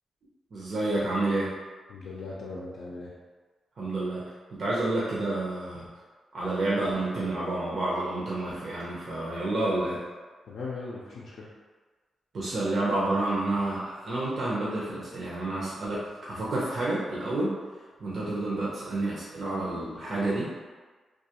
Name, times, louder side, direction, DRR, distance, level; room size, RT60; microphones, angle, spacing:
voice 1, 0.5-1.5 3.8-4.2 4.6-5.9 6.3-10.0 12.3-16.0 16.3-17.6 18.0-20.5, right 2 dB, 55° right, -8 dB, 0.6 m, -29 dB
voice 2, 1.9-3.1 10.5-11.5, left 3 dB, 80° left, -7 dB, 0.4 m, -38 dB
2.3 x 2.3 x 2.8 m, 1.4 s
cardioid pair, 90°, 0 cm